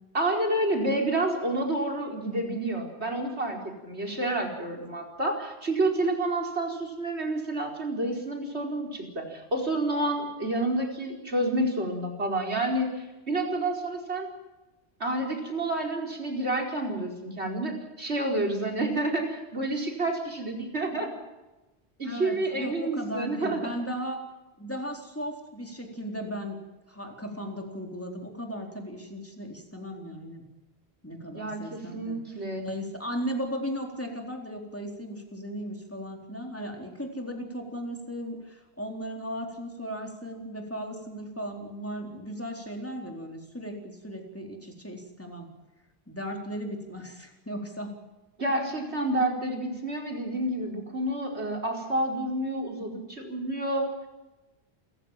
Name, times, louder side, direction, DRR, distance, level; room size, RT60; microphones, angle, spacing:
voice 1, 0.1-14.3 15.0-21.1 22.0-23.7 31.3-32.7 48.4-53.9, right 1 dB, 75° right, 2 dB, 5.0 m, -29 dB
voice 2, 22.0-24.2 24.6-26.6 26.9-30.4 31.0-32.2 32.6-45.5 46.1-48.0, equal, 10° left, 2 dB, 4.0 m, -36 dB
28.5 x 15.0 x 7.5 m, 1.1 s
omnidirectional pair, 1.1 m